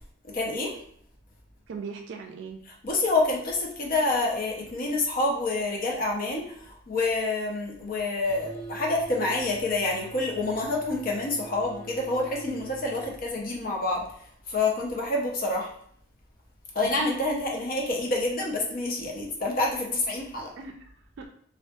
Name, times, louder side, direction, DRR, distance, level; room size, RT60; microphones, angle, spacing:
voice 1, 0.2-0.8 2.8-15.7 16.7-20.5, left 2 dB, 50° left, -1 dB, 0.6 m, -28 dB
voice 2, 1.7-2.6 16.8-16.9 20.6-21.3, right 5 dB, 70° right, 4 dB, 0.3 m, -39 dB
sound 1, 8.3-13.2, right 3 dB, 15° left, 0.9 m, -44 dB
2.5 x 2.4 x 2.2 m, 0.62 s
head